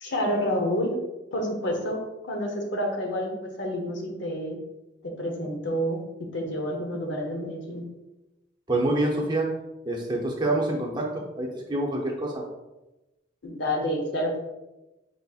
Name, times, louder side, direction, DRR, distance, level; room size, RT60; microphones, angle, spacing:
voice 1, 0.0-1.0 1.3-2.0 2.2-4.6 5.0-6.0 6.3-7.8 13.4-14.4, equal, 65° left, 1 dB, 0.9 m, -29 dB
voice 2, 8.7-9.5 9.9-12.4, right 2 dB, 20° right, -2 dB, 0.7 m, -26 dB
4.7 x 4.1 x 2.4 m, 1.0 s
head